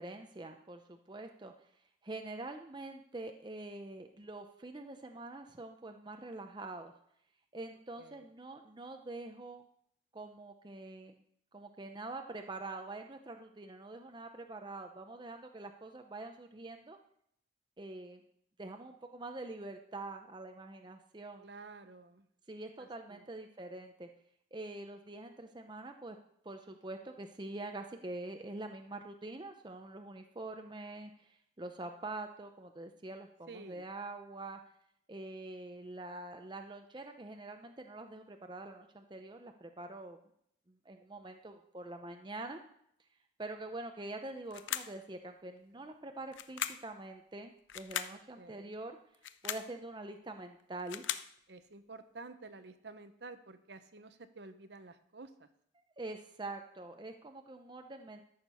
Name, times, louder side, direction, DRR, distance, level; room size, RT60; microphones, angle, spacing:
voice 1, 0.0-1.5 2.0-6.9 7.5-9.7 10.1-11.2 11.5-17.0 17.8-18.2 18.6-21.5 22.5-24.1 24.5-26.2 26.4-34.6 35.1-40.2 40.7-42.6 43.4-49.0 49.4-51.0 56.0-58.2, right 2 dB, 25° right, 5 dB, 0.6 m, -45 dB
voice 2, 21.4-22.3 22.8-23.2 33.5-33.9 48.1-48.7 51.5-55.5, right 3 dB, 60° right, 11 dB, 0.8 m, -51 dB
sound 1, 44.5-45.0 46.3-46.9 47.7-48.2 49.1-49.7 50.6-51.3, left 11 dB, 80° left, 0.5 m, -38 dB
13.5 x 6.6 x 5.5 m, 0.69 s
head